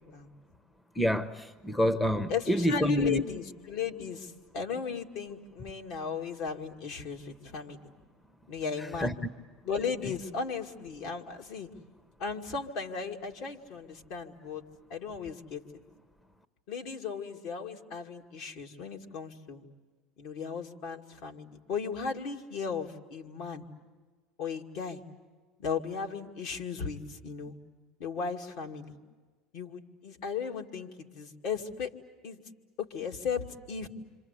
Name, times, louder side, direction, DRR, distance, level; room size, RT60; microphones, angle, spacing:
voice 1, 0.9-3.2 9.0-9.1, left 1 dB, 10° left, 0.8 m, -27 dB
voice 2, 2.3-7.8 8.5-9.1 9.6-11.7 12.2-14.6 14.9-15.8 16.7-19.6 20.2-23.7 24.4-25.0 25.6-27.6 28.0-28.9 29.5-31.9 32.2-32.4 32.8-33.9, left 6 dB, 70° left, 2.4 m, -36 dB
27.5 x 26.0 x 8.3 m
supercardioid pair, 105°, 0 cm